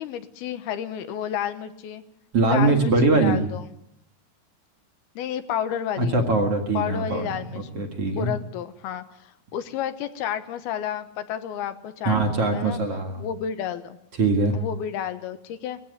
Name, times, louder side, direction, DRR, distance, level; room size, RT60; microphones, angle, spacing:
voice 1, 0.0-2.0 2.5-3.6 5.2-6.2 6.7-12.8 13.2-14.0 14.5-15.8, left 9 dB, 80° left, 11 dB, 3.0 m, -31 dB
voice 2, 2.3-3.4 6.0-8.3 12.1-13.3 14.2-14.5, right 3 dB, 45° right, 4 dB, 2.3 m, -22 dB
20.0 x 15.5 x 9.5 m, 0.74 s
omnidirectional pair, 4.4 m